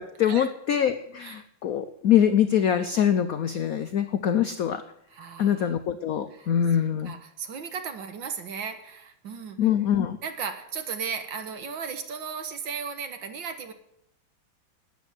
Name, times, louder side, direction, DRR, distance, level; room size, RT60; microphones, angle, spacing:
voice 1, 0.0-4.8 5.4-7.1 9.6-10.2, left 9 dB, 70° left, 11 dB, 0.8 m, -24 dB
voice 2, 5.1-5.7 6.3-6.5 7.0-9.7 10.2-13.7, right 6 dB, 65° right, 7 dB, 2.0 m, -36 dB
12.0 x 9.8 x 8.2 m, 0.77 s
omnidirectional pair, 2.3 m